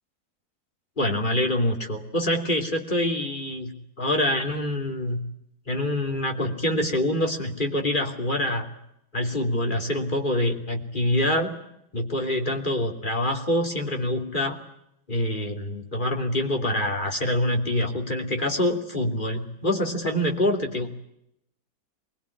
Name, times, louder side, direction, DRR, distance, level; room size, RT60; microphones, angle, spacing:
voice 1, 1.0-5.2 5.7-8.7 9.1-11.5 11.9-14.6 15.1-20.9, left 1 dB, 25° left, 3 dB, 3.1 m, -25 dB
25.0 x 21.0 x 9.9 m, 0.78 s
omnidirectional pair, 2.1 m